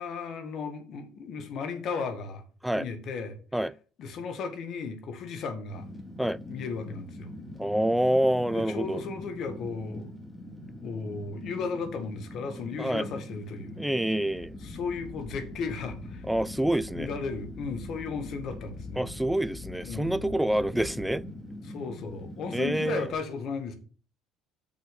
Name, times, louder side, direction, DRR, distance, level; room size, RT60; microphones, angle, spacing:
voice 1, 0.0-2.4 2.7-3.4 4.0-5.9 6.5-7.3 8.5-10.1 10.8-13.8 14.6-16.2 16.9-19.0 19.8-20.3 21.6-23.7, left 5 dB, 60° left, 1.7 m, -35 dB
Fire, 5.7-23.1, left 1 dB, 15° left, 2.2 m, -43 dB
voice 2, 7.6-9.0 12.8-13.1 13.8-14.6 16.3-17.1 19.0-21.2 22.5-23.1, right 1 dB, 5° right, 0.4 m, -27 dB
sound 1, 14.3-21.3, left 4 dB, 80° left, 2.2 m, -46 dB
6.1 x 5.4 x 6.5 m
hypercardioid pair, 70°, 0 cm